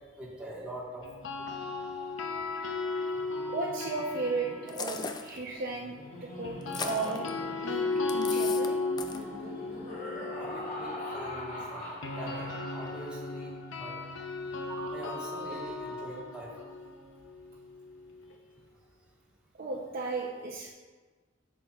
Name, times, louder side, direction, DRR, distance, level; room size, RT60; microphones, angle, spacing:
voice 1, 0.1-1.1 10.4-13.9 14.7-16.5, right 1 dB, 5° right, -5 dB, 1.3 m, -43 dB
sound 1, 1.0-5.2 6.4-18.3, left 3 dB, 80° left, 0.6 m, -36 dB
Laughter, 3.1-13.5, left 1 dB, 40° left, 1.4 m, -44 dB
voice 2, 3.5-6.0 6.2-6.5 6.8-7.3 7.6-7.8 8.1-8.7 19.6-20.7, right 3 dB, 50° right, -3 dB, 0.6 m, -34 dB
sound 2, 4.7-5.4 6.6-7.3 8.1-8.7 9.0-9.2, left 5 dB, 20° left, 0.3 m, -37 dB
7.9 x 6.0 x 2.3 m, 1.3 s
head